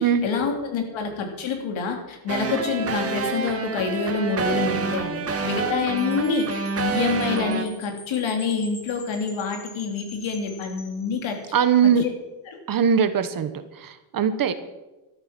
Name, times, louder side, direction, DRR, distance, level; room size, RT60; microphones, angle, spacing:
voice 1, 0.0-11.4 12.0-12.1 12.5-12.6, left 5 dB, 75° left, 4 dB, 3.6 m, -27 dB
sound 1, 2.3-7.6, right 5 dB, 30° right, 1.6 m, -27 dB
Wind chime, 6.0-11.7, left 2 dB, 30° left, 3.5 m, -46 dB
voice 2, 11.5-12.0 12.7-13.5 13.8-14.5, right 7 dB, 45° right, 11 dB, 1.2 m, -20 dB
13.0 x 12.5 x 6.1 m, 1.0 s
cardioid pair, 165°, 46 cm